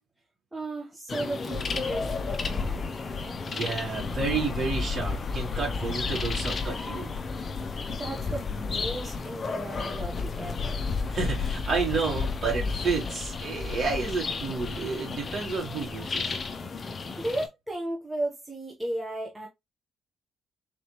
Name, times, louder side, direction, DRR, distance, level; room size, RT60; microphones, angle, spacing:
voice 1, 0.5-3.4 7.9-10.8 17.1-19.5, right 1 dB, 10° right, 1.1 m, -35 dB
sound 1, 1.1-17.5, left 4 dB, 40° left, 0.6 m, -32 dB
voice 2, 3.5-7.1 11.1-16.4, right 4 dB, 45° right, 2.6 m, -30 dB
4.0 x 3.2 x 3.0 m
cardioid pair, 90°, 0 cm